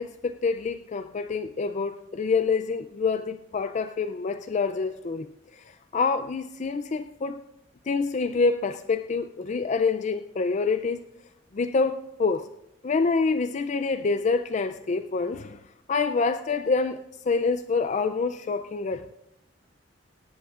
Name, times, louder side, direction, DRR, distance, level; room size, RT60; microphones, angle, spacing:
voice 1, 0.0-5.3 5.5-7.4 7.9-11.0 11.5-12.5 12.8-15.6 15.9-19.1, left 4 dB, 40° left, 11 dB, 0.4 m, -26 dB
18.0 x 17.5 x 2.4 m, 0.88 s
head